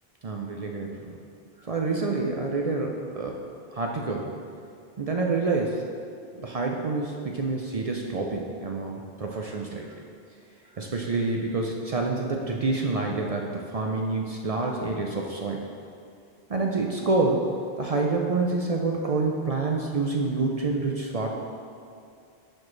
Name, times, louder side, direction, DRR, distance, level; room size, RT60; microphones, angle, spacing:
voice 1, 0.2-1.1 1.6-3.4 3.7-4.3 5.0-5.8 6.3-9.9 10.8-15.6 16.5-17.5 17.8-21.3, right 3 dB, 50° right, 0 dB, 0.5 m, -27 dB
10.5 x 4.4 x 3.2 m, 2.4 s
omnidirectional pair, 1.1 m